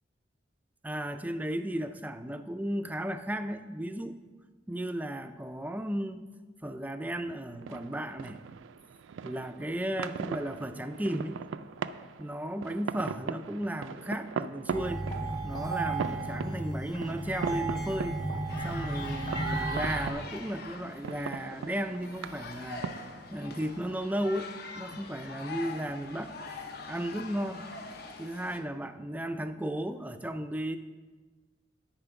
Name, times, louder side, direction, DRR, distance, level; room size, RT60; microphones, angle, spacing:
voice 1, 0.8-4.3 4.7-6.3 6.6-8.4 9.2-11.4 12.2-15.1 15.4-18.2 18.6-23.1 23.3-24.5 24.8-26.3 26.9-27.7 28.2-30.8, right 1 dB, 10° right, 9 dB, 0.3 m, -34 dB
sound 1, 7.2-26.5, right 6 dB, 85° right, 0.3 m, -41 dB
sound 2, 14.7-20.1, right 2 dB, 20° left, 0.8 m, -34 dB
sound 3, 18.5-28.6, left 4 dB, 55° left, 0.7 m, -43 dB
9.8 x 4.3 x 5.8 m, 1.4 s
head